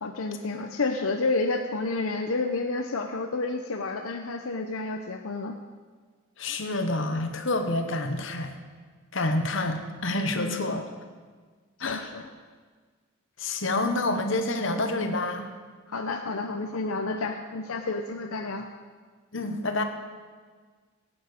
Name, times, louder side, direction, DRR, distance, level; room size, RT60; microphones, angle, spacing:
voice 1, 0.0-5.6 10.3-10.8 11.9-12.3 15.9-18.7, left 3 dB, 85° left, 4 dB, 0.7 m, -30 dB
voice 2, 6.4-8.5 9.1-10.8 11.8-12.0 13.4-15.5 19.3-19.8, left 2 dB, 60° left, 6 dB, 1.2 m, -28 dB
16.5 x 8.9 x 5.2 m, 1.5 s
head